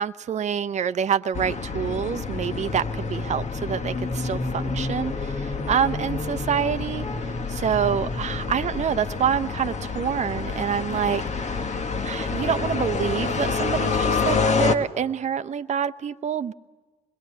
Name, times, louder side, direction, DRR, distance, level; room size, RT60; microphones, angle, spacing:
voice 1, 0.0-7.1 7.5-11.7 12.0-16.5, right 8 dB, 45° right, 11 dB, 0.8 m, -27 dB
sound 1, 1.3-14.7, left 4 dB, 45° left, 1.8 m, -27 dB
26.0 x 21.5 x 8.6 m, 1.2 s
hypercardioid pair, 45°, 16 cm